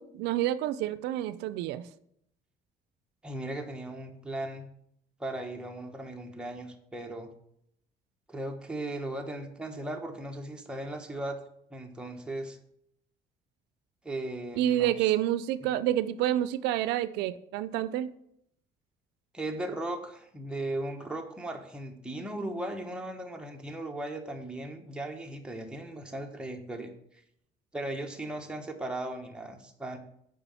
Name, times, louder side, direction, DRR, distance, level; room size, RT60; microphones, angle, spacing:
voice 1, 0.0-1.8 14.6-18.1, right 12 dB, 90° right, 14 dB, 0.4 m, -28 dB
voice 2, 3.2-4.7 5.2-7.3 8.3-11.4 11.7-12.6 14.0-15.1 19.3-27.2 27.7-30.0, right 1 dB, 5° right, 2 dB, 1.1 m, -37 dB
6.8 x 5.0 x 5.7 m, 0.73 s
cardioid pair, 110°, 17 cm